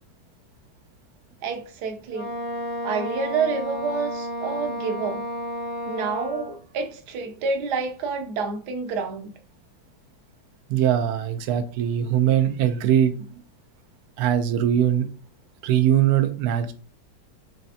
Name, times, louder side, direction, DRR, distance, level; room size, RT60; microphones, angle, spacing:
voice 1, 1.4-2.3 2.8-5.2 5.9-9.3, right 4 dB, 65° right, 1.1 m, -28 dB
Wind instrument woodwind instrument, 2.1-6.6, left 1 dB, 85° left, 1.7 m, -32 dB
voice 2, 10.7-13.1 14.2-15.0 15.6-16.7, right 10 dB, 85° right, 0.8 m, -21 dB
5.3 x 3.2 x 2.7 m
omnidirectional pair, 2.3 m